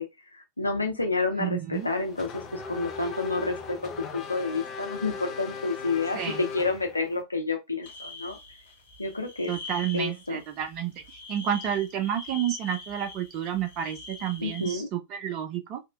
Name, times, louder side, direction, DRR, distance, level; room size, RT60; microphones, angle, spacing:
voice 1, 0.0-8.4 9.0-9.5 9.9-10.4 14.4-14.9, left 3 dB, 85° left, 0.4 m, -30 dB
voice 2, 1.4-1.9 6.1-6.4 9.5-10.9 11.3-15.8, right 10 dB, 40° right, 0.4 m, -30 dB
Race car auto racing / Accelerating revving vroom, 1.7-7.2, left 5 dB, 30° left, 0.5 m, -38 dB
sound 1, 7.8-14.7, left 3 dB, 60° left, 1.0 m, -44 dB
2.7 x 2.1 x 2.3 m
figure-of-eight pair, 90°, 0 cm